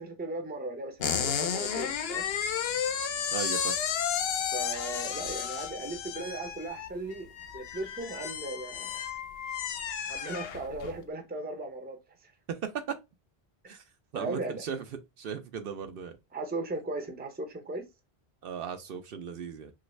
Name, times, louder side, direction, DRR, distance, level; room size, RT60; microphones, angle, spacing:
voice 1, 0.0-2.2 4.5-7.3 7.5-9.0 10.1-12.3 14.1-14.6 16.3-17.8, right 2 dB, 10° right, 0.5 m, -37 dB
sound 1, 1.0-11.0, left 8 dB, 70° left, 0.8 m, -33 dB
voice 2, 3.3-3.8 12.5-13.0 13.7-13.8 14.1-14.8 15.2-16.2 18.4-19.7, right 7 dB, 65° right, 0.7 m, -36 dB
3.0 x 2.5 x 3.1 m
omnidirectional pair, 1.1 m